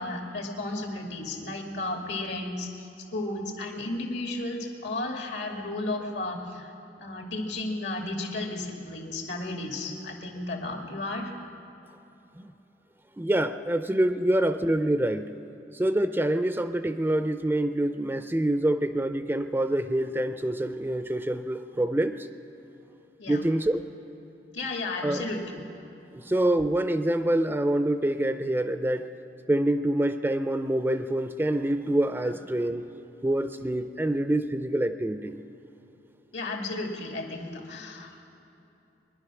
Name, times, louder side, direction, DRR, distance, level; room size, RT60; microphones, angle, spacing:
voice 1, 0.0-6.7 7.0-11.3 23.2-23.5 24.5-25.5 36.3-38.2, left 2 dB, 80° left, 2 dB, 2.1 m, -33 dB
voice 2, 13.2-15.4 15.7-22.3 23.3-23.8 25.0-25.2 26.1-29.1 29.5-32.9 33.2-35.4, right 1 dB, 10° right, 10 dB, 0.4 m, -26 dB
21.5 x 10.5 x 6.1 m, 2.9 s
head